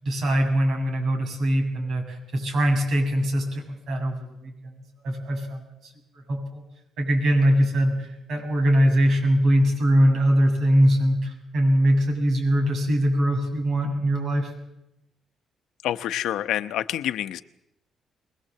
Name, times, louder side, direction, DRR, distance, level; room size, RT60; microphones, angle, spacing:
voice 1, 0.0-5.9 6.3-6.6 7.0-14.5, equal, 65° right, 2 dB, 7.4 m, -22 dB
voice 2, 15.8-17.4, left 12 dB, 85° left, 11 dB, 0.9 m, -27 dB
22.5 x 20.0 x 7.7 m, 0.86 s
cardioid pair, 90°, 0 cm